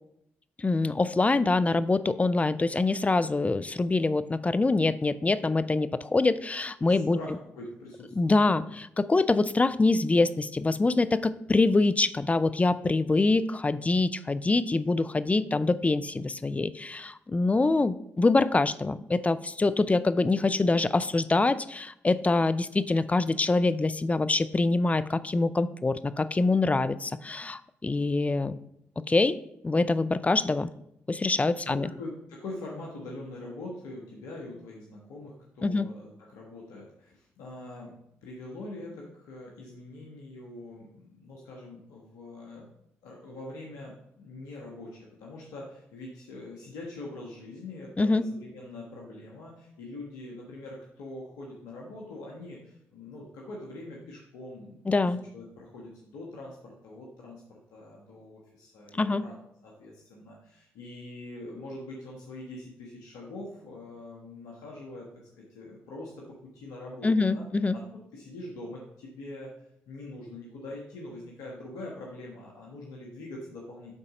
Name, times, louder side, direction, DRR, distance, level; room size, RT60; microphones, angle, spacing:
voice 1, 0.6-7.2 8.2-28.6 29.0-29.4 29.6-30.7 31.1-31.9 35.6-35.9 48.0-48.2 54.9-55.2 59.0-59.2 67.0-67.8, left 3 dB, 25° left, 15 dB, 0.5 m, -25 dB
voice 2, 6.8-8.7 31.6-37.9 38.2-42.7 43.0-59.3 59.6-65.1 65.4-66.2 66.5-67.4 67.7-69.5 69.9-73.9, left 2 dB, 80° left, -2 dB, 1.3 m, -43 dB
8.7 x 4.1 x 5.1 m, 0.78 s
hypercardioid pair, 50°, 6 cm